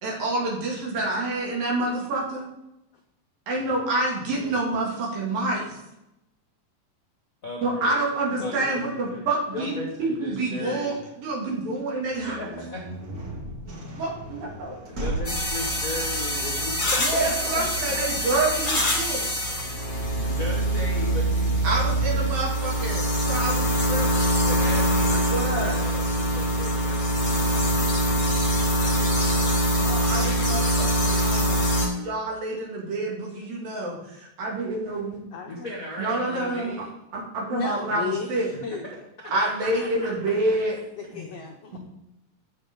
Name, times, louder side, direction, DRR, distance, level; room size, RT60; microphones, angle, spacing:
voice 1, 0.0-2.5 3.5-5.8 7.6-9.7 10.0-10.9 11.2-12.4 14.0-14.8 17.0-19.2 21.6-24.1 25.2-25.8 29.7-31.7 32.0-35.2 36.0-36.7 37.1-38.5 39.3-40.8 41.1-41.3 41.7-41.8, right 2 dB, 75° right, -3 dB, 4.2 m, -28 dB
voice 2, 4.2-4.8 7.4-8.0 8.4-9.3 9.5-11.0 12.3-12.8 14.9-18.3 20.2-21.6 21.8-22.4 24.4-29.8 35.4-36.9 39.2-40.1, left 1 dB, 50° left, -1 dB, 1.0 m, -37 dB
voice 3, 8.4-9.2 19.1-19.6 35.3-35.7 37.5-38.9 41.0-41.8, left 4 dB, 80° left, 2 dB, 1.4 m, -35 dB
sound 1, 12.0-20.7, right 1 dB, 35° right, 1.6 m, -38 dB
sound 2, 15.2-31.9, equal, 20° left, 1.5 m, -24 dB
16.0 x 6.4 x 3.7 m, 0.87 s
omnidirectional pair, 4.1 m